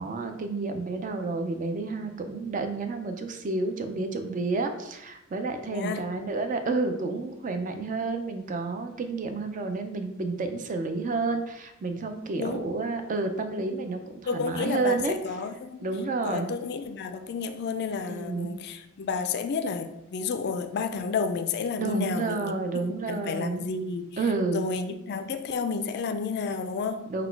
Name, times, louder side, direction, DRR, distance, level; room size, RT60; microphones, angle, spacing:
voice 1, 0.0-15.2 15.8-16.5 18.1-18.5 21.8-23.6 24.2-24.7 27.1-27.3, right 3 dB, 35° right, 6 dB, 0.4 m, -30 dB
voice 2, 5.7-6.1 12.4-12.7 14.3-15.9 16.2-22.6 23.1-24.2 24.5-27.1, left 5 dB, 50° left, 9 dB, 0.3 m, -31 dB
3.9 x 2.2 x 4.5 m, 0.88 s
head